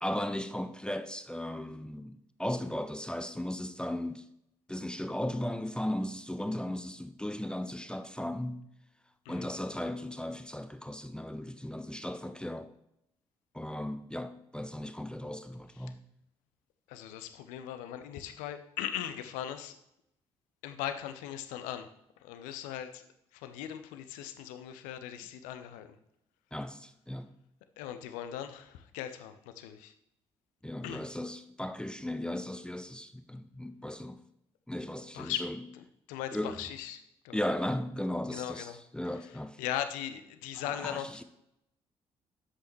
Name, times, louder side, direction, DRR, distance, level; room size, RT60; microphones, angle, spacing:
voice 1, 0.0-4.2 4.7-8.7 9.3-12.7 13.5-16.0 26.5-27.3 30.6-34.2 34.7-35.6 36.3-36.6 37.3-39.6 40.6-41.2, left 1 dB, 5° left, 0.6 m, -36 dB
voice 2, 16.9-19.8 20.6-21.9 22.2-23.0 23.3-25.9 27.8-29.9 30.8-31.0 35.1-35.5 35.7-37.4 38.3-38.8 39.1-41.2, left 11 dB, 65° left, 0.7 m, -39 dB
10.0 x 7.8 x 3.2 m
figure-of-eight pair, 45°, 14 cm